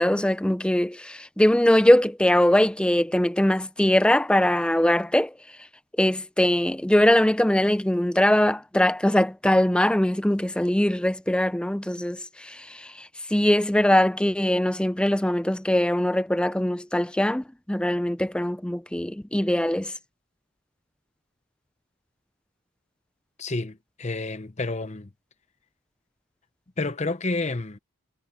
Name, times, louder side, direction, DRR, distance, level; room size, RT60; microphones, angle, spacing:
voice 1, 0.0-5.3 6.0-19.9, left 1 dB, 5° left, 0.3 m, -22 dB
voice 2, 23.4-25.1 26.8-27.8, left 3 dB, 30° left, 0.8 m, -29 dB
head